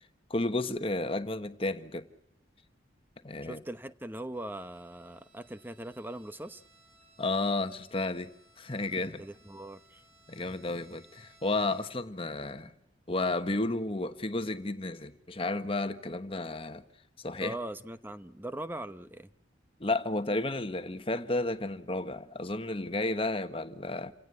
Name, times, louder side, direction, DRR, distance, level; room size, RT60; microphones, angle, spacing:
voice 1, 0.3-2.1 3.2-3.6 7.2-8.3 8.6-9.2 10.3-12.7 13.1-16.8 17.2-17.6 19.8-24.1, left 2 dB, 30° left, 1.3 m, -32 dB
voice 2, 3.4-6.6 9.2-10.0 17.4-19.3, right 1 dB, 10° right, 0.9 m, -40 dB
Bowed string instrument, 4.3-12.2, right 2 dB, 40° right, 7.8 m, -63 dB
28.5 x 17.5 x 8.4 m
head